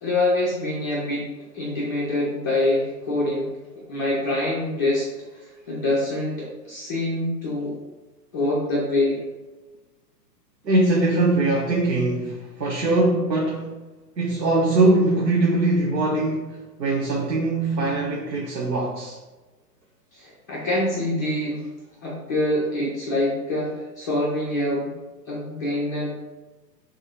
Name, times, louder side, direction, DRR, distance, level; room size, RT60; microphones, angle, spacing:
voice 1, 0.0-1.3 1.5-3.5 3.9-7.8 8.3-9.2 20.1-21.7 22.0-24.9 25.3-26.1, left 1 dB, 15° left, -9 dB, 0.3 m, -25 dB
voice 2, 10.6-13.8 14.2-19.2, right 2 dB, 85° right, -2 dB, 1.0 m, -22 dB
5.0 x 3.6 x 2.9 m, 1.2 s
figure-of-eight pair, 115°, 50 cm